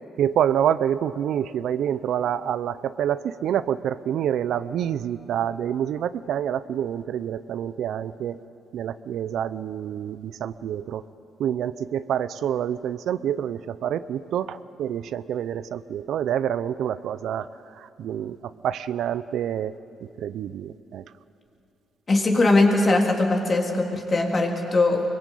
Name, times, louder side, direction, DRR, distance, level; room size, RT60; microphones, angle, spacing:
voice 1, 0.2-8.4 8.7-11.0 11.4-17.5 17.8-18.4 18.6-19.7 20.0-21.0, right 9 dB, 75° right, 14 dB, 0.6 m, -27 dB
voice 2, 22.1-25.0, left 2 dB, 35° left, 1 dB, 3.5 m, -20 dB
23.0 x 21.0 x 8.5 m, 2.6 s
cardioid pair, 90°, 0 cm